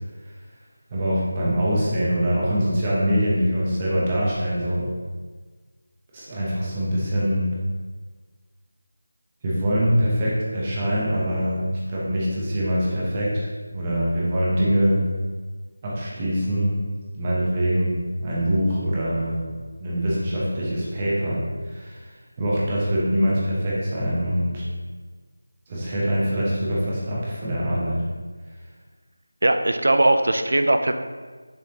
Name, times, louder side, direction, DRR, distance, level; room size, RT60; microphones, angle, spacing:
voice 1, 0.9-4.9 6.1-7.5 9.4-11.6 11.9-15.0 15.8-16.8 17.1-17.9 18.2-19.5 19.8-22.1 22.4-24.6 25.7-28.0, equal, 20° right, -6 dB, 0.8 m, -23 dB
voice 2, 29.4-30.9, right 2 dB, 65° right, 7 dB, 0.3 m, -19 dB
4.5 x 3.4 x 2.8 m, 1.4 s
figure-of-eight pair, 175°, 0 cm